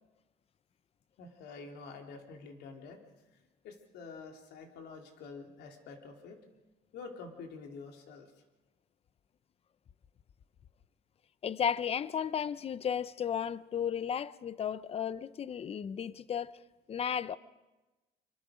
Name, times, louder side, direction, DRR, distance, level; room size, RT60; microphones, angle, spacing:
voice 1, 1.2-3.0 3.3-6.4 6.9-8.3, left 4 dB, 80° left, 3.1 m, -48 dB
voice 2, 11.4-16.5 16.9-17.4, left 8 dB, 35° left, 0.7 m, -34 dB
25.5 x 24.0 x 5.0 m
cardioid pair, 110°, 17 cm